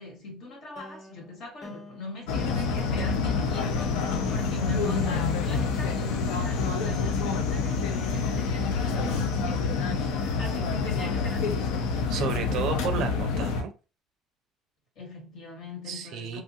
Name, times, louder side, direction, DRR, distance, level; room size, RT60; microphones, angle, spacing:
voice 1, 0.0-11.7 15.0-16.4, left 2 dB, 60° left, 1.4 m, -41 dB
sound 1, 0.8-7.2, left 1 dB, 15° left, 0.9 m, -47 dB
sound 2, 2.3-13.6, left 4 dB, 85° left, 0.5 m, -27 dB
voice 2, 12.1-13.7 15.9-16.4, right 7 dB, 65° right, 0.4 m, -32 dB
2.9 x 2.3 x 2.7 m
cardioid pair, 115°, 0 cm